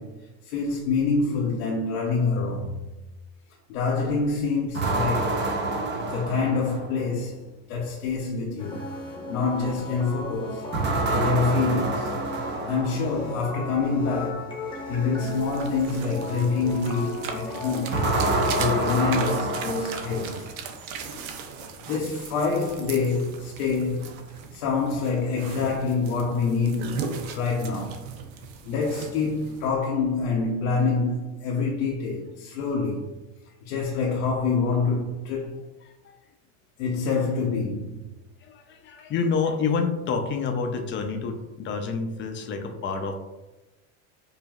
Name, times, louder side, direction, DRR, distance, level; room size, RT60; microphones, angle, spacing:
voice 1, 0.0-2.8 3.7-5.5 6.0-8.8 9.3-10.7 11.1-12.2 12.6-14.6 14.9-18.0 18.5-20.5 21.9-24.2 24.5-28.1 28.7-33.1 33.6-35.6 36.8-38.0, left 4 dB, 80° left, 0.7 m, -26 dB
sound 1, 4.7-7.1 10.7-13.2 17.9-20.5, right 2 dB, 25° right, 0.6 m, -27 dB
sound 2, 8.6-18.6, left 2 dB, 10° left, 0.8 m, -36 dB
sound 3, 15.2-29.7, right 5 dB, 85° right, 0.7 m, -38 dB
voice 2, 38.5-43.1, left 5 dB, 30° left, 0.5 m, -28 dB
4.9 x 2.6 x 2.3 m
supercardioid pair, 120°, 41 cm